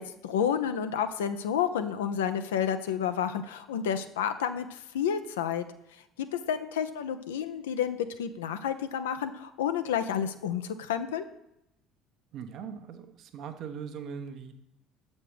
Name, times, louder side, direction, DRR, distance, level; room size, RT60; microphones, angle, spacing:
voice 1, 0.0-5.6 6.5-11.2, left 8 dB, 70° left, 10 dB, 0.5 m, -30 dB
voice 2, 12.3-14.6, right 6 dB, 50° right, 8 dB, 0.8 m, -40 dB
7.6 x 5.3 x 4.8 m, 0.84 s
figure-of-eight pair, 55°, 0 cm